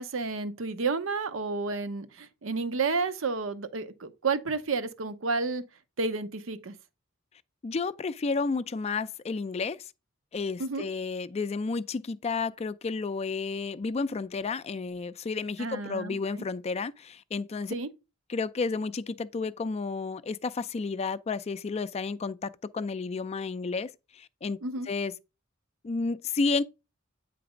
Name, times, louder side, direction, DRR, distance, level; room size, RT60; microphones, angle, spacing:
voice 1, 0.0-5.6 6.0-6.7 10.6-10.9 15.6-16.4 17.7-17.9 24.6-24.9, right 4 dB, 70° right, 0.7 m, -31 dB
voice 2, 7.6-9.8 10.3-17.7 18.3-24.6 24.9-25.1 25.8-26.6, left 4 dB, 30° left, 0.4 m, -31 dB
8.8 x 3.3 x 5.0 m
head